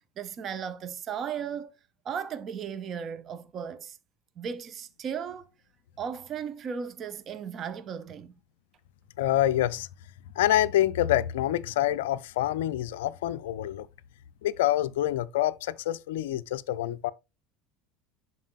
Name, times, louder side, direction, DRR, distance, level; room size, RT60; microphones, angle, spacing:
voice 1, 0.2-1.7 2.0-4.0 4.4-5.5 6.0-8.4, right 7 dB, 40° right, 0.8 m, -36 dB
voice 2, 9.2-9.9 10.4-13.9 14.4-17.1, left 13 dB, 65° left, 0.4 m, -26 dB
11.0 x 4.2 x 2.3 m
figure-of-eight pair, 70°, 0 cm